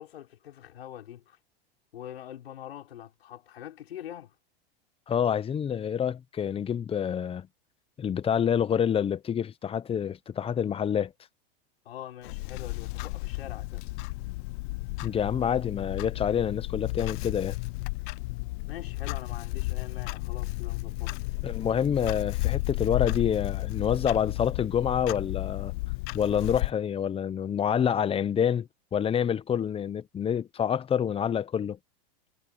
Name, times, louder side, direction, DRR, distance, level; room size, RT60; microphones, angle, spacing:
voice 1, 0.0-1.4 1.9-4.3 11.8-13.9 18.7-21.2, left 11 dB, 90° left, 6.1 m, -44 dB
voice 2, 5.1-7.5 8.0-11.1 15.0-17.6 21.4-25.7 26.1-31.8, left 8 dB, 20° left, 0.8 m, -27 dB
Clock, 12.2-26.7, left 23 dB, 55° left, 0.7 m, -33 dB
hypercardioid pair, 120°, 30 cm